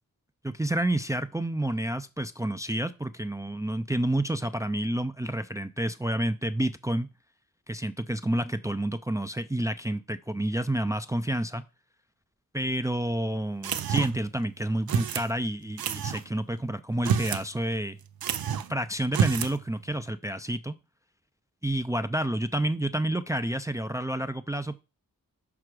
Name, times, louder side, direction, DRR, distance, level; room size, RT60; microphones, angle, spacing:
voice 1, 0.4-7.1 7.7-11.6 12.5-18.0 18.7-20.8 21.6-24.8, right 1 dB, 10° right, 11 dB, 0.5 m, -29 dB
sound 1, 13.6-14.3 14.9-15.3 15.8-16.2 16.9-17.5 17.7-17.8 18.2-18.7 19.1-19.6, right 7 dB, 90° right, 0.6 m, -28 dB
6.1 x 4.8 x 4.8 m, 0.29 s
cardioid pair, 60°, 35 cm